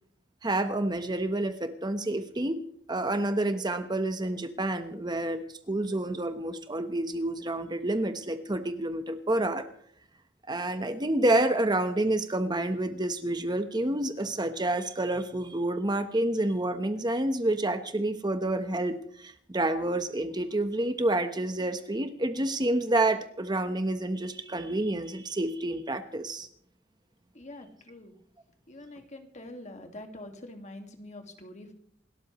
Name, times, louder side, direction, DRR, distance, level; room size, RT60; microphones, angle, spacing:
voice 1, 0.4-2.6 2.9-9.7 10.5-26.5, right 1 dB, 25° right, 9 dB, 1.1 m, -29 dB
voice 2, 27.3-28.1 28.7-31.7, left 1 dB, 40° left, 5 dB, 2.0 m, -45 dB
28.0 x 13.0 x 3.1 m, 0.63 s
head